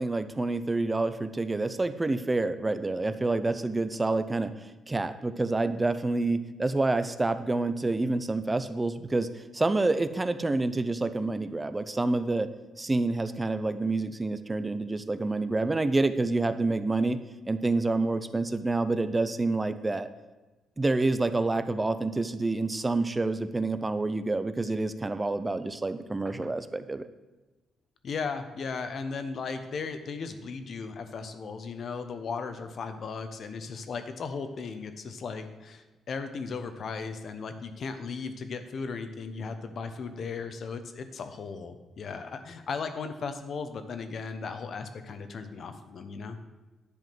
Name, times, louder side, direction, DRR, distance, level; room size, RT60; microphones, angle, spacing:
voice 1, 0.0-12.5 12.8-17.2 17.5-20.1 20.8-27.1, right 2 dB, 15° right, 11 dB, 0.6 m, -28 dB
voice 2, 28.0-46.4, left 5 dB, 50° left, 8 dB, 1.0 m, -36 dB
10.5 x 4.9 x 7.6 m, 1.2 s
cardioid pair, 120°, 0 cm